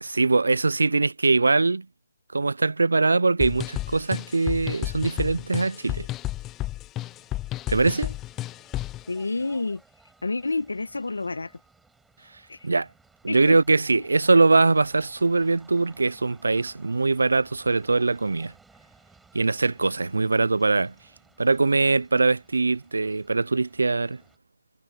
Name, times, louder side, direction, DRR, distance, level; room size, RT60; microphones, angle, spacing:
voice 1, 0.0-1.9 2.3-6.1 7.7-8.1 12.6-12.9 13.2-18.5 19.3-20.9 21.4-24.2, right 3 dB, 80° right, 0.5 m, -22 dB
sound 1, 3.4-9.0, left 15 dB, 15° left, 0.3 m, -32 dB
sound 2, 7.0-24.4, right 4 dB, 5° right, 7.5 m, -59 dB
voice 2, 9.1-9.8 10.2-11.5 12.5-12.7 13.3-13.8, left 3 dB, 85° left, 1.4 m, -29 dB
figure-of-eight pair, 150°, 0 cm